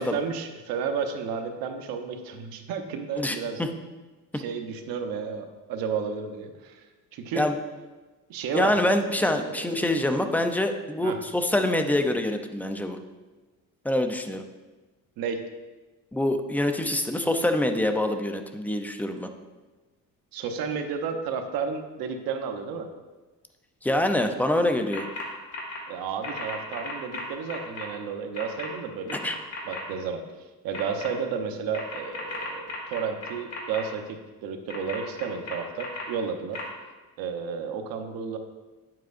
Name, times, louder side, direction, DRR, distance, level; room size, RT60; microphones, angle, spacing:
voice 1, 0.0-3.6 4.3-6.8 7.1-7.5 8.3-8.8 9.1-9.9 11.0-11.2 15.2-15.4 20.3-22.9 25.9-29.4 29.7-30.2 30.6-36.6 37.2-38.4, right 6 dB, 80° right, 6 dB, 1.0 m, -32 dB
voice 2, 3.2-3.7 7.3-7.6 8.5-13.0 13.8-14.4 16.1-19.3 23.8-25.0 29.2-29.4, left 1 dB, 5° left, 6 dB, 0.5 m, -25 dB
sound 1, 24.9-25.2 25.5-25.8 26.2-27.8 28.3-28.7 29.1-29.8 30.7-31.1 31.7-33.8 34.7-36.0 36.5-36.6, left 3 dB, 45° left, 2.0 m, -35 dB
9.2 x 7.6 x 2.6 m, 1.2 s
cardioid pair, 125°, 35 cm